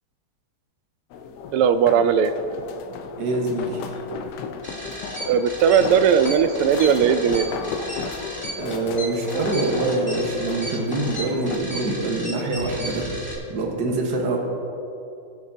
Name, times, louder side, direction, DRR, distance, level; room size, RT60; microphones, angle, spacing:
sound 1, 1.1-11.6, left 6 dB, 75° left, 0.9 m, -34 dB
voice 1, 1.5-2.3 5.2-7.4, right 7 dB, 90° right, 11 dB, 1.5 m, -18 dB
voice 2, 3.2-3.8 8.6-13.1 13.5-14.4, right 2 dB, 55° right, -1 dB, 1.8 m, -25 dB
sound 2, 4.6-13.3, right 1 dB, 5° left, 2.3 m, -35 dB
21.5 x 7.4 x 2.7 m, 2.7 s
omnidirectional pair, 2.4 m